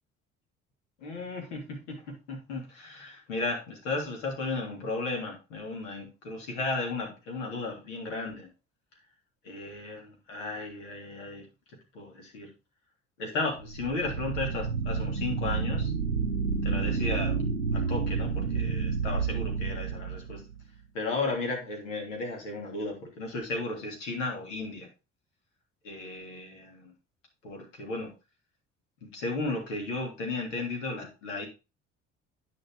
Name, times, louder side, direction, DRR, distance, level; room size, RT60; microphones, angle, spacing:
voice 1, 1.0-2.0 2.3-8.5 9.4-11.4 11.9-12.5 13.2-15.9 16.6-17.4 17.7-20.4 20.9-24.9 25.8-26.9 27.4-28.1 29.0-31.5, left 3 dB, 70° left, 1 dB, 3.2 m, -34 dB
sound 1, 13.6-20.6, right 5 dB, 90° right, 0.7 m, -30 dB
10.5 x 5.2 x 4.7 m, 0.29 s
figure-of-eight pair, 55°, 38 cm